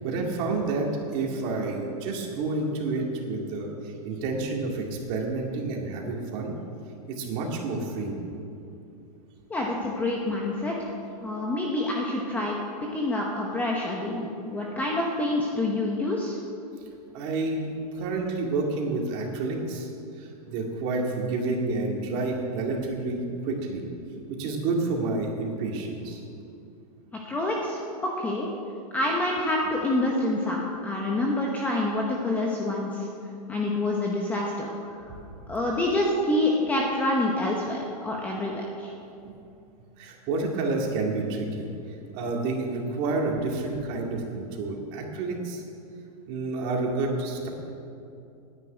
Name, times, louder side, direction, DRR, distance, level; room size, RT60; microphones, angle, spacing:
voice 1, 0.0-6.5 7.1-8.2 17.1-19.9 20.2-23.8 24.1-26.2 39.2-39.3 40.0-41.7 42.1-45.6 46.3-47.5, right 3 dB, 35° right, 0 dB, 2.1 m, -29 dB
voice 2, 9.5-10.9 11.2-12.6 12.9-16.4 27.2-28.5 28.9-33.1 33.5-34.7 35.0-35.1 35.5-38.9, left 1 dB, 10° left, -2 dB, 0.8 m, -27 dB
10.0 x 9.1 x 9.0 m, 2.6 s
supercardioid pair, 170°, 19 cm